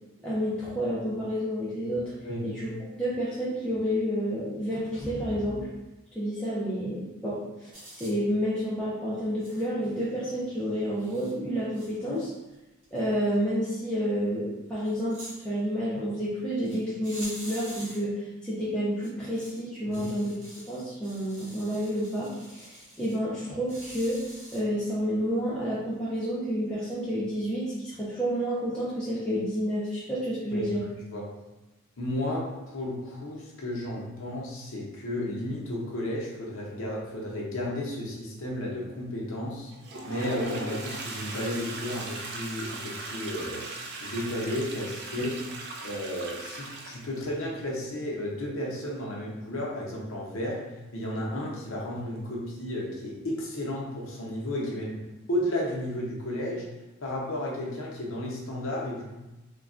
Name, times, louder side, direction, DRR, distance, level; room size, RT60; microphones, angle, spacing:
voice 1, 0.2-2.1 2.4-2.7 3.0-5.7 6.1-12.3 12.9-15.2 15.4-20.3 20.7-24.2 24.5-30.8 45.2-45.3, equal, 5° left, -10 dB, 0.5 m, -30 dB
sound 1, 7.7-8.1 9.4-9.7 10.4-10.5 10.9-11.3 11.7-12.5 12.8-13.0 13.3-13.4 14.8-15.4 16.6-16.8 17.0-18.0 19.0-19.6 19.9-23.1 23.7-24.6, right 1 dB, 70° right, 1.0 m, -45 dB
voice 2, 30.5-30.9 31.1-31.3 32.0-39.7 40.1-43.7 44.0-45.3 45.8-50.6 50.9-55.0 55.3-56.7 57.0-59.2, left 1 dB, 70° left, -2 dB, 0.7 m, -33 dB
Toilet flush, 39.7-47.3, right 2 dB, 50° right, 0.4 m, -38 dB
3.2 x 2.2 x 2.4 m, 1.0 s
head